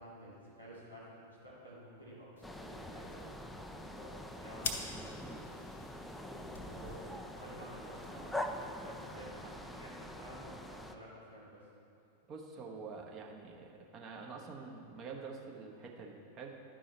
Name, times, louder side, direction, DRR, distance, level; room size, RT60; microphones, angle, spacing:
voice 1, 0.0-3.3 3.6-4.6 5.0-11.7, equal, 90° right, -8 dB, 2.1 m, -52 dB
sound 1, 2.4-9.2, left 4 dB, 60° left, 0.8 m, -48 dB
sound 2, 2.4-10.9, left 1 dB, 5° left, 0.4 m, -44 dB
voice 2, 12.3-16.5, right 4 dB, 30° right, 0 dB, 1.1 m, -47 dB
11.5 x 5.4 x 4.2 m, 2.8 s
figure-of-eight pair, 90°, 0 cm